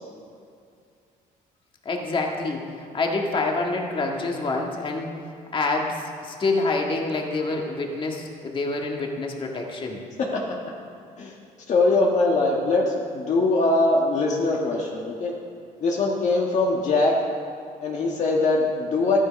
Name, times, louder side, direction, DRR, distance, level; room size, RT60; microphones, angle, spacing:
voice 1, 1.9-5.1 5.5-10.0, left 3 dB, 35° left, 0 dB, 1.9 m, -27 dB
voice 2, 11.7-15.3 15.8-17.1 17.8-19.2, left 2 dB, 50° left, -2 dB, 1.6 m, -22 dB
13.0 x 11.0 x 5.3 m, 2.4 s
cardioid pair, 115°, 15 cm